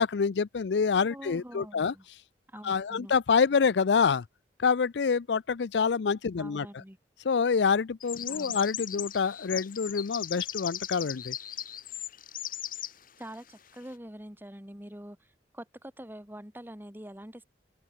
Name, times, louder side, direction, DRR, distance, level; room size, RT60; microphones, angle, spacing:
voice 1, 0.0-1.9 2.6-4.2 4.6-6.7 7.2-11.4, left 5 dB, 75° left, 0.5 m, -26 dB
voice 2, 1.1-2.0 2.5-3.1 6.4-7.0 8.3-8.6 13.2-17.4, equal, 10° right, 3.6 m, -45 dB
sound 1, 8.0-12.9, left 11 dB, 50° left, 3.8 m, -38 dB
open air
head